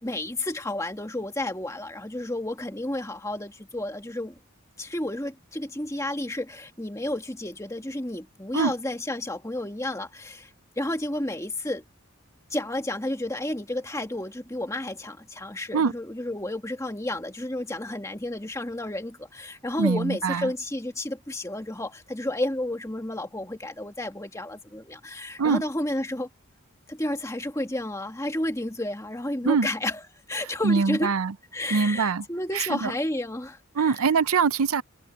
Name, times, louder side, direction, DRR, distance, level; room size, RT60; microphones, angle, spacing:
voice 1, 0.0-4.4 4.8-11.8 12.5-26.3 26.9-30.0 30.3-31.1 31.5-34.0, left 1 dB, 15° left, 1.8 m, -31 dB
voice 2, 19.8-20.5 25.4-25.6 29.4-29.7 30.6-31.3 31.7-32.2 32.5-32.9 33.8-34.8, right 5 dB, 85° right, 0.6 m, -23 dB
head